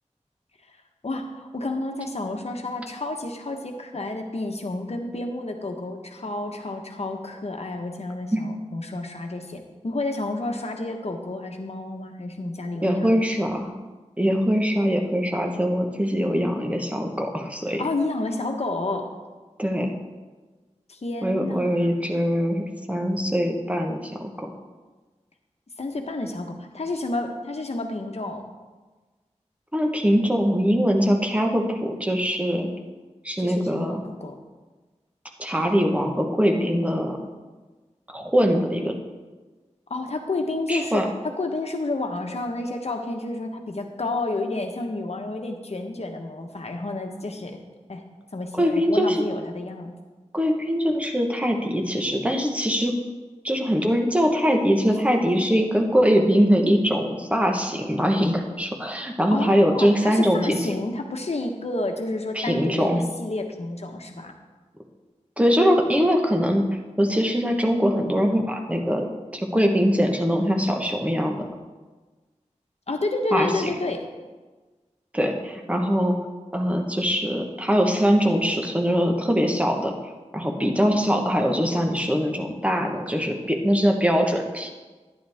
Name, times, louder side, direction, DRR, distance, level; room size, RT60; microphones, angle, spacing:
voice 1, 1.0-13.2 17.7-19.2 20.9-21.9 25.8-28.4 33.4-34.4 39.9-47.6 47.9-48.0 48.3-49.9 54.9-55.0 59.3-64.3 72.9-74.1, left 2 dB, 60° left, 3 dB, 1.2 m, -30 dB
voice 2, 12.8-13.7 14.2-17.8 19.6-19.9 21.2-24.5 29.7-32.7 33.2-34.0 35.4-37.2 38.1-38.9 40.7-41.1 48.6-49.2 50.3-52.9 53.4-60.7 62.3-63.0 65.4-66.7 67.0-69.1 69.3-71.5 73.3-73.7 75.1-76.2 76.5-79.9 80.3-84.7, equal, 10° right, 2 dB, 1.3 m, -22 dB
11.0 x 10.0 x 3.6 m, 1.3 s
wide cardioid pair, 70°, 12 cm